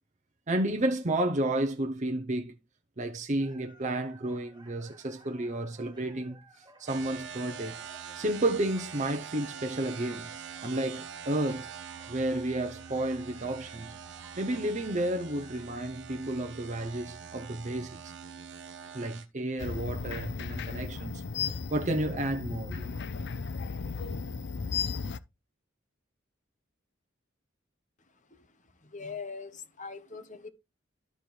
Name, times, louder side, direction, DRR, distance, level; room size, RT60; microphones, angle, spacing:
voice 1, 0.5-2.5 3.0-7.8 8.2-10.3 10.6-11.7 12.1-14.0 14.4-18.1 18.9-22.9, right 1 dB, 40° right, 0.8 m, -31 dB
sound 1, 3.4-15.7, right 2 dB, 25° right, 2.0 m, -57 dB
sound 2, 6.9-19.3, right 7 dB, 65° right, 1.1 m, -44 dB
sound 3, 19.6-25.2, left 5 dB, 60° left, 0.6 m, -35 dB
voice 2, 28.8-30.5, left 5 dB, 40° left, 1.2 m, -41 dB
13.0 x 4.5 x 3.3 m
head